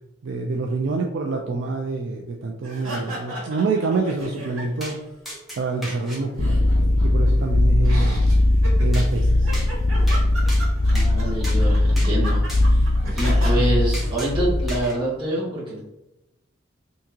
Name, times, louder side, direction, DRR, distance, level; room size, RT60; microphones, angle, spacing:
voice 1, 0.2-5.0 5.6-6.6 7.0-8.4 8.7-9.5, right 3 dB, 55° right, 1 dB, 0.3 m, -26 dB
sound 1, 2.6-5.0 5.3-7.3 7.8-13.6, right 2 dB, 75° right, 1.3 m, -36 dB
sound 2, 4.8-5.0 5.3-6.2 8.9-9.1 9.5-9.7 10.1-10.2 10.5-11.1 11.4-11.6 12.0-12.1 12.5-12.6 13.2-13.4 13.9-14.3 14.7-15.0, equal, ahead, 0.7 m, -35 dB
sound 3, 6.4-14.9, left 1 dB, 50° left, 0.4 m, -19 dB
voice 2, 10.9-12.9 13.1-15.8, right 1 dB, 25° right, -7 dB, 1.1 m, -26 dB
3.5 x 2.7 x 2.8 m, 0.89 s
head